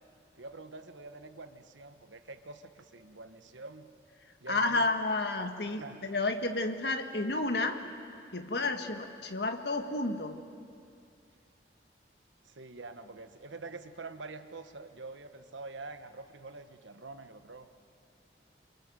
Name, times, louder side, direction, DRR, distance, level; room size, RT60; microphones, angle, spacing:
voice 1, 0.3-3.9 4.4-4.9 5.8-6.0 12.4-17.7, right 3 dB, 85° right, 9 dB, 1.3 m, -46 dB
voice 2, 4.5-7.8 8.3-10.4, left 2 dB, 60° left, 6 dB, 1.7 m, -31 dB
28.5 x 23.5 x 7.7 m, 2.4 s
head